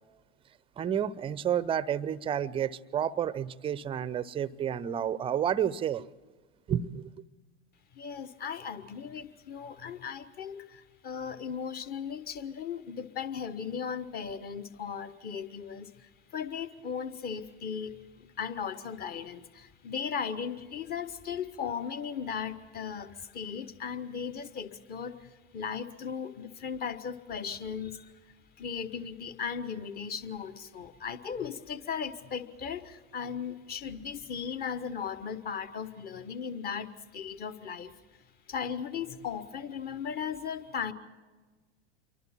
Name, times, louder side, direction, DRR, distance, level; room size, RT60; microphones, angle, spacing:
voice 1, 0.8-6.1 6.7-7.1, right 9 dB, 15° right, 0.6 m, -30 dB
voice 2, 7.9-28.1 28.6-37.9 38.5-40.9, left 7 dB, 30° left, 1.4 m, -37 dB
28.0 x 23.5 x 4.5 m
figure-of-eight pair, 90°, 33 cm